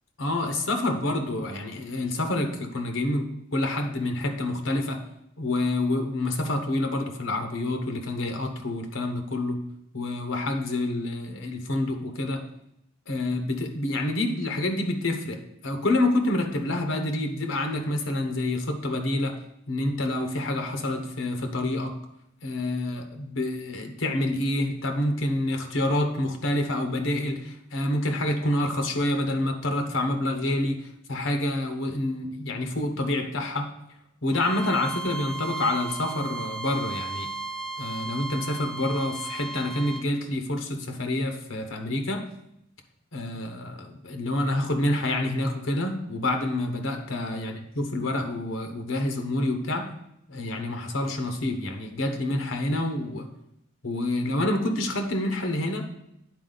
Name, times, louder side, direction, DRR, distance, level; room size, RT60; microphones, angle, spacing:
voice 1, 0.2-5.0 5.4-9.6 9.9-12.4 13.1-19.4 19.7-21.9 22.4-33.7 34.2-37.3 37.8-42.2 43.1-49.9 50.3-53.3 53.8-55.8, left 1 dB, 85° left, 5 dB, 1.1 m, -27 dB
Bowed string instrument, 34.3-40.1, right 4 dB, ahead, 0.3 m, -35 dB
9.6 x 4.4 x 4.0 m, 0.79 s
head